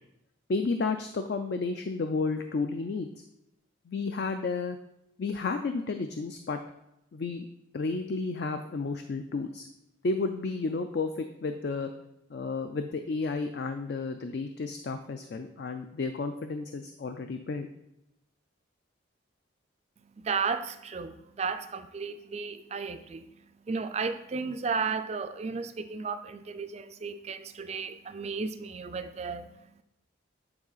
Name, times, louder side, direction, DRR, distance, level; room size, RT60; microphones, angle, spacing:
voice 1, 0.5-3.1 3.9-4.8 5.2-6.6 7.1-7.5 7.7-9.7 10.0-11.9 12.3-17.7, left 3 dB, 55° left, 7 dB, 0.4 m, -32 dB
voice 2, 20.2-23.3 23.6-29.8, right 5 dB, 35° right, 10 dB, 0.3 m, -34 dB
8.8 x 3.7 x 4.0 m, 0.87 s
head